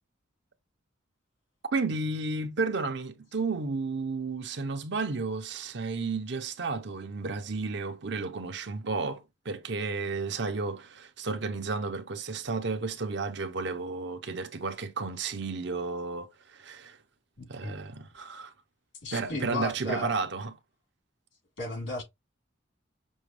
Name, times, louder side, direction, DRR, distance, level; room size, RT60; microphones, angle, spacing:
voice 1, 1.7-17.0 17.5-18.5 19.1-20.5, right 4 dB, 60° right, 0.7 m, -32 dB
voice 2, 17.4-17.8 19.0-20.1 21.6-22.0, left 2 dB, 75° left, 3.3 m, -34 dB
6.2 x 2.2 x 3.1 m
head